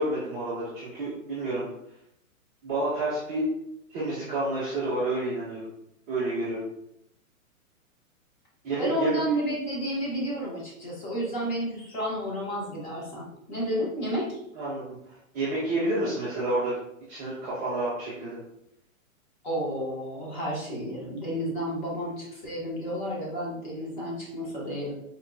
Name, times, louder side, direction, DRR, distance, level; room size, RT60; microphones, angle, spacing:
voice 1, 0.0-1.6 2.6-3.5 3.9-5.7 6.1-6.6 8.6-9.2 14.5-16.7 17.1-18.4, right 2 dB, 10° right, -14 dB, 0.5 m, -29 dB
voice 2, 8.8-14.4 19.4-24.9, equal, 35° left, -4 dB, 1.1 m, -31 dB
4.3 x 2.2 x 2.5 m, 0.78 s
hypercardioid pair, 165°, 42 cm